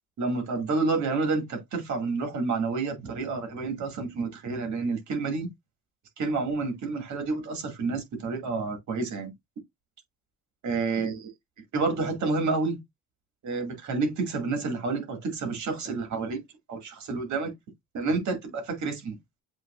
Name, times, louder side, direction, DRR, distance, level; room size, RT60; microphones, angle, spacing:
voice 1, 0.2-5.5 6.2-9.3 10.6-11.3 11.7-12.8 13.4-16.4 16.7-17.5 17.9-19.2, right 4 dB, 70° right, 2.0 m, -29 dB
7.6 x 2.9 x 2.4 m
cardioid pair, 90°, 30 cm